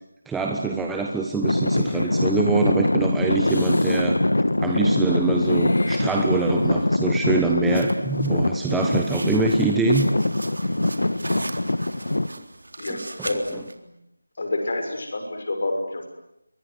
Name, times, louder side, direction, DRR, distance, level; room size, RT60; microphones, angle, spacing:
voice 1, 0.3-4.2 4.6-10.1 12.9-13.3, right 4 dB, 5° right, 1 dB, 1.0 m, -24 dB
Traffic noise roadway noise / Engine, 1.4-12.3, left 1 dB, 80° left, 1.4 m, -23 dB
Meow / Hiss, 1.6-2.2 3.4-4.1 5.4-6.6, left 1 dB, 65° left, 6.3 m, -39 dB
sound 1, 7.7-13.7, right 2 dB, 75° right, 3.7 m, -39 dB
voice 2, 12.8-13.8 14.4-16.2, left 2 dB, 50° left, 4 dB, 6.5 m, -28 dB
28.0 x 24.0 x 8.1 m, 0.82 s
figure-of-eight pair, 170°, 0 cm